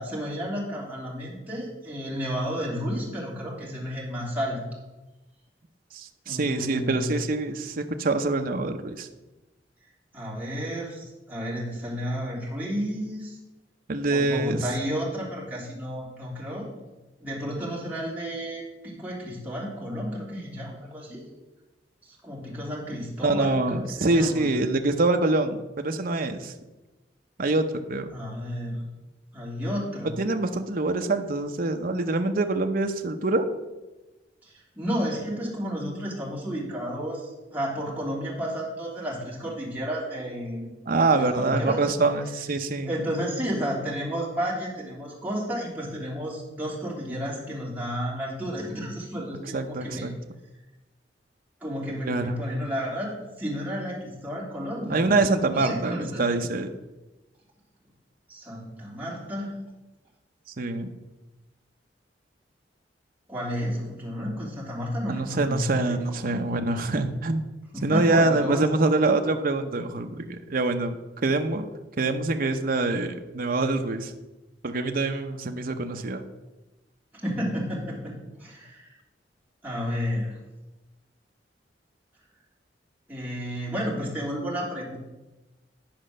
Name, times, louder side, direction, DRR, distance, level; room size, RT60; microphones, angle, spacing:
voice 1, 0.0-4.6 6.2-7.1 10.1-13.4 14.1-16.7 17.2-21.2 22.0-24.5 28.1-28.8 29.3-30.2 34.4-40.7 41.1-41.9 42.9-50.1 51.6-53.1 53.4-55.1 55.5-56.2 58.3-59.5 63.3-66.3 67.7-68.7 77.1-78.1 78.4-79.0 79.6-80.4 83.1-85.0, equal, 10° right, -6 dB, 3.1 m, -32 dB
voice 2, 5.9-9.1 13.9-14.6 23.2-26.5 27.4-28.1 30.2-33.5 40.9-42.9 49.5-50.1 52.1-52.4 54.9-56.7 60.6-60.9 65.1-67.5 67.8-71.0 71.2-71.7 72.0-74.1 74.6-76.2, right 2 dB, 55° right, 5 dB, 0.7 m, -25 dB
10.5 x 5.1 x 6.5 m, 1.1 s
head